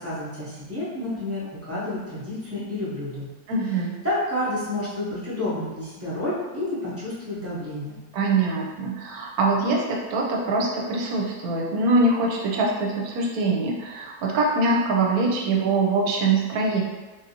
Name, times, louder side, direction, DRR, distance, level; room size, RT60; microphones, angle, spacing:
voice 1, 0.0-3.3 4.0-8.0, left 1 dB, 15° right, -9 dB, 0.7 m, -30 dB
voice 2, 3.5-4.0 8.1-16.8, right 3 dB, 75° right, -1 dB, 1.1 m, -23 dB
3.4 x 2.7 x 2.8 m, 1.2 s
omnidirectional pair, 1.6 m